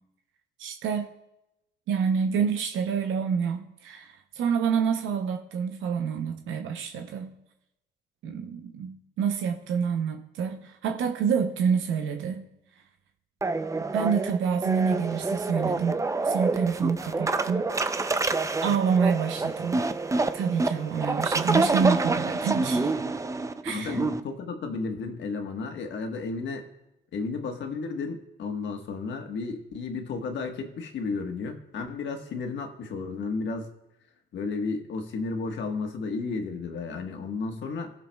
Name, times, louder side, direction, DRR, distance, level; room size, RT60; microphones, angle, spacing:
voice 1, 0.6-1.1 1.9-7.3 8.2-12.5 13.9-17.7 18.0-18.2 18.6-19.8 20.3-22.9 23.6-24.0, right 6 dB, 80° right, 0.7 m, -27 dB
sound 1, 13.4-24.2, right 3 dB, 15° right, 0.5 m, -27 dB
voice 2, 23.7-26.6 27.1-33.7 34.3-37.9, left 4 dB, 65° left, 1.3 m, -33 dB
17.5 x 6.6 x 2.3 m
cardioid pair, 90°, 20 cm